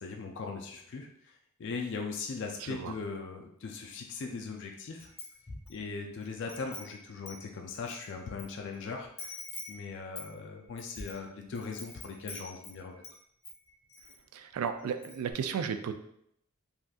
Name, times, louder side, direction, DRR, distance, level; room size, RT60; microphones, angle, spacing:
voice 1, 0.0-5.1 5.7-9.4 9.7-13.0, left 4 dB, 55° left, 2 dB, 0.3 m, -39 dB
Wind chime, 5.0-5.8 6.2-8.5 8.7-8.8 9.2-13.2 13.4-14.2 14.5-14.6 14.9-15.3, left 3 dB, 30° left, 0.7 m, -46 dB
voice 2, 14.3-15.9, right 7 dB, 85° right, 8 dB, 0.3 m, -34 dB
3.5 x 2.6 x 2.3 m, 0.73 s
head